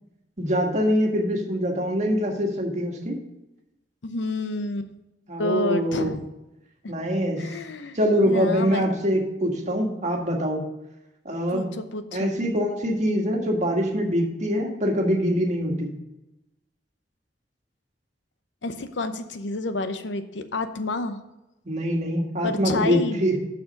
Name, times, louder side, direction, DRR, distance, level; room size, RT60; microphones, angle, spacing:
voice 1, 0.4-3.2 5.3-6.1 6.9-7.5 7.9-10.6 11.2-11.7 12.1-15.9 21.6-23.4, equal, 40° right, 1 dB, 1.6 m, -24 dB
voice 2, 4.0-4.9 5.4-6.3 6.8-6.9 7.4-8.0 8.3-9.0 11.5-12.3 18.6-21.2 22.4-23.2, left 2 dB, 90° left, 9 dB, 0.8 m, -29 dB
7.2 x 6.0 x 6.4 m, 0.96 s
head